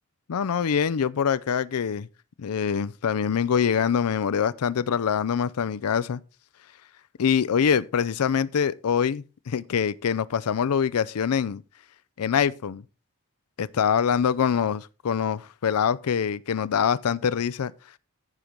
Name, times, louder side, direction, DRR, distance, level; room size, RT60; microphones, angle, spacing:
voice 1, 0.3-2.1 2.4-6.2 7.2-11.6 12.2-12.8 13.6-17.7, left 7 dB, 90° left, 0.4 m, -24 dB
14.5 x 5.1 x 4.5 m
head